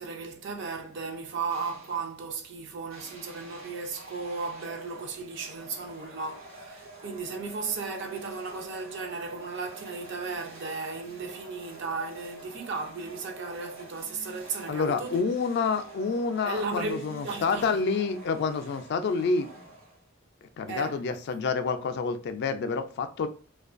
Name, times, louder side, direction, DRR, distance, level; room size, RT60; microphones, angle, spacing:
voice 1, 0.0-15.2 16.4-17.8 20.7-21.0, right 4 dB, 60° right, 0.5 m, -35 dB
sound 1, 1.5-2.2 2.9-20.2, right 2 dB, 80° right, 1.0 m, -48 dB
voice 2, 14.7-19.5 20.6-23.3, left 4 dB, 55° left, 0.3 m, -28 dB
2.4 x 2.2 x 2.4 m
head